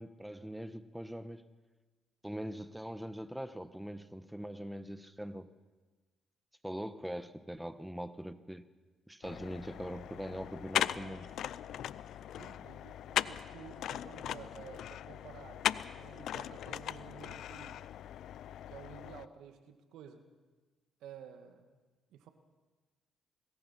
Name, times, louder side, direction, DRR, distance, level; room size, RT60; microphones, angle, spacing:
voice 1, 0.0-1.5 2.2-5.5 6.6-8.7 9.1-11.3, equal, 5° right, 1.3 m, -42 dB
sound 1, 9.2-19.3, left 11 dB, 70° left, 0.6 m, -39 dB
voice 2, 12.4-15.7 15.9-17.9 18.7-20.2 21.0-21.8 22.1-22.3, right 8 dB, 75° right, 2.0 m, -52 dB
25.5 x 20.5 x 5.8 m
supercardioid pair, 55°, 0 cm